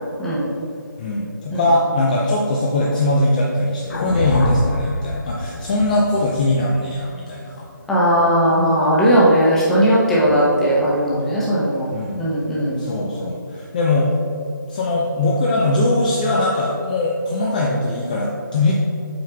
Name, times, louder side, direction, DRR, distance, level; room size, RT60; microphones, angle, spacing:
voice 1, 1.0-7.7 10.2-10.4 11.9-12.3 12.8-14.1 14.7-18.7, left 2 dB, 25° left, -3 dB, 0.5 m, -21 dB
sound 1, 3.9-8.2, left 1 dB, 55° left, 1.1 m, -26 dB
voice 2, 7.9-11.9 12.2-12.8, equal, 5° left, -8 dB, 0.8 m, -17 dB
7.6 x 5.5 x 2.3 m, 2.5 s
figure-of-eight pair, 160°, 11 cm